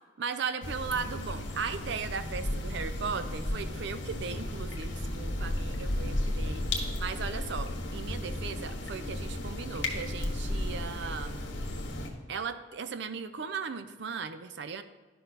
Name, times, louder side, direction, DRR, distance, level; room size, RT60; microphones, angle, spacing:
voice 1, 0.2-6.7 7.0-11.4 12.3-14.8, right 5 dB, 65° right, 11 dB, 0.5 m, -37 dB
sound 1, 0.6-12.1, left 1 dB, 90° left, 1.3 m, -34 dB
11.5 x 5.5 x 4.1 m, 1.3 s
head